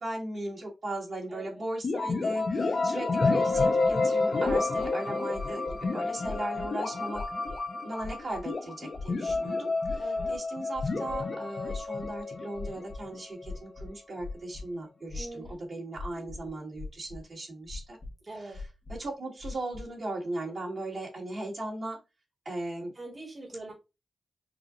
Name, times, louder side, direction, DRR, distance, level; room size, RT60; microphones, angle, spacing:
voice 1, 0.0-5.6 5.9-7.2 7.8-18.0 18.9-22.0 22.5-22.9, right 2 dB, 60° right, 2.2 m, -37 dB
voice 2, 1.3-1.6 4.3-4.6 10.0-10.3 15.1-15.6 18.2-18.6 22.9-23.7, right 2 dB, 30° right, 1.7 m, -43 dB
sound 1, 1.8-13.5, left 3 dB, 65° left, 0.9 m, -30 dB
sound 2, 3.5-3.9 4.4-4.9 5.3-5.9 6.2-6.7 7.1-7.6 8.0-8.4 8.9-9.4 9.8-10.4 10.7-11.2 11.7-12.2 12.5-13.0 13.4-14.6 15.1-15.5 16.0-16.5 16.8-17.2 17.7-18.1 18.5-19.1 19.4-19.8, left 3 dB, 35° left, 1.2 m, -40 dB
4.8 x 2.6 x 2.5 m
cardioid pair, 65°, 0 cm